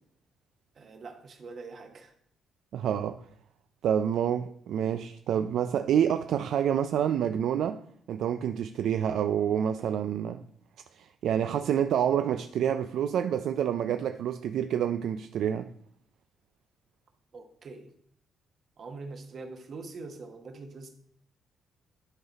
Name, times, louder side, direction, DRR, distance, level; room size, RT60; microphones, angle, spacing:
voice 1, 0.7-2.1 17.3-17.9 18.8-20.9, right 3 dB, 45° right, 1.1 m, -43 dB
voice 2, 2.7-3.2 3.8-7.8 8.1-10.4 11.0-15.7, right 9 dB, 70° right, 0.3 m, -28 dB
11.0 x 4.0 x 4.0 m
cardioid pair, 120°, 0 cm